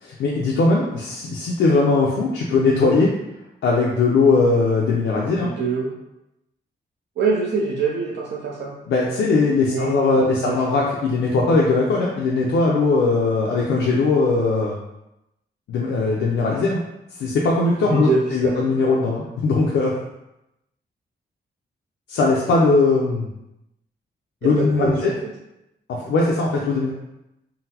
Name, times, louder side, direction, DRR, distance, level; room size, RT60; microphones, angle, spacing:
voice 1, 0.0-3.1 3.6-5.5 8.9-14.8 15.7-16.8 17.1-19.9 22.1-23.3 24.4-25.1 25.9-26.9, left 3 dB, 85° left, -3 dB, 0.5 m, -19 dB
voice 2, 5.4-5.9 7.2-8.7 9.7-9.9 10.2-10.6 17.9-18.6 24.4-25.1, right 4 dB, 65° right, -3 dB, 0.5 m, -24 dB
3.8 x 2.0 x 2.8 m, 0.90 s
wide cardioid pair, 125°, 20 cm